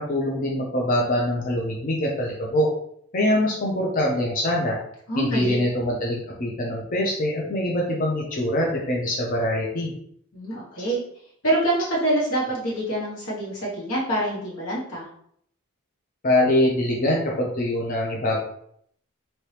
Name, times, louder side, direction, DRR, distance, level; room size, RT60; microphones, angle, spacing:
voice 1, 0.0-2.7 3.1-4.8 5.2-9.9 16.2-18.4, left 1 dB, 40° left, -2 dB, 0.5 m, -24 dB
voice 2, 5.1-5.5 10.3-11.0 11.4-15.1, right 1 dB, 85° left, -5 dB, 1.4 m, -25 dB
2.9 x 2.8 x 3.2 m, 0.68 s
head